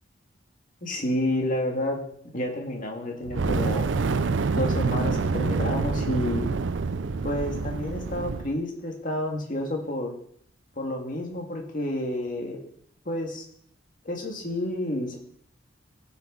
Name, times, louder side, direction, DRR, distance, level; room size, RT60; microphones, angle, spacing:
voice 1, 0.8-2.0 2.3-4.0 4.5-6.5 7.2-10.1 10.8-12.6 13.1-13.4 14.0-15.2, left 1 dB, 45° left, 1 dB, 1.9 m, -30 dB
Fire, 3.2-8.5, right 4 dB, 75° right, 0.5 m, -27 dB
16.5 x 5.8 x 4.0 m, 0.66 s
head